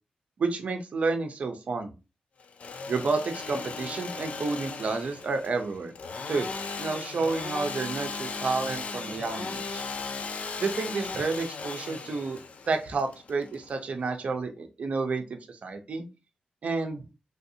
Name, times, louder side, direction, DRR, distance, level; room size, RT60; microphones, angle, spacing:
voice 1, 0.4-1.9 2.9-5.9 6.3-6.5 6.8-9.8 10.6-12.4 12.7-16.0 16.6-17.0, right 4 dB, 55° right, 6 dB, 0.6 m, -30 dB
Engine / Sawing, 2.4-14.1, left 4 dB, 55° left, 0.4 m, -37 dB
3.4 x 2.5 x 2.7 m, 0.29 s
wide cardioid pair, 105°, 3 cm